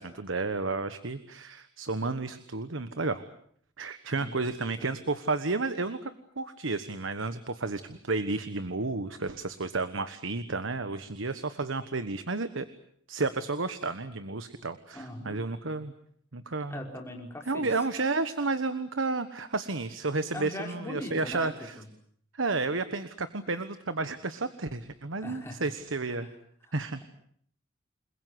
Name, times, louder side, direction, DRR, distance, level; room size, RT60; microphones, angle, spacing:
voice 1, 0.0-3.2 3.8-12.7 13.1-15.9 16.3-16.8 17.5-21.8 22.3-26.3 26.7-27.0, right 3 dB, 85° right, 11 dB, 1.3 m, -32 dB
voice 2, 14.9-15.4 16.7-17.7 20.3-21.8 25.2-25.7 26.1-26.3 26.6-27.0, left 1 dB, 15° left, 1 dB, 5.1 m, -41 dB
29.0 x 21.5 x 8.0 m, 0.63 s
head